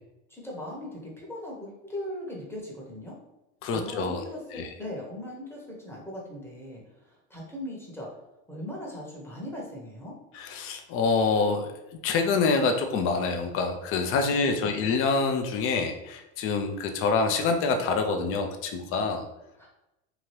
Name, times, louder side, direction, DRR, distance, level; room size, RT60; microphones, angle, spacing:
voice 1, 0.3-3.2 3.7-8.1 8.5-10.1 19.6-19.7, left 1 dB, 5° left, -4 dB, 0.9 m, -39 dB
voice 2, 3.6-4.2 4.5-4.7 10.3-19.2, left 4 dB, 35° left, 4 dB, 0.4 m, -26 dB
2.8 x 2.4 x 3.1 m, 0.93 s
hypercardioid pair, 100°, 43 cm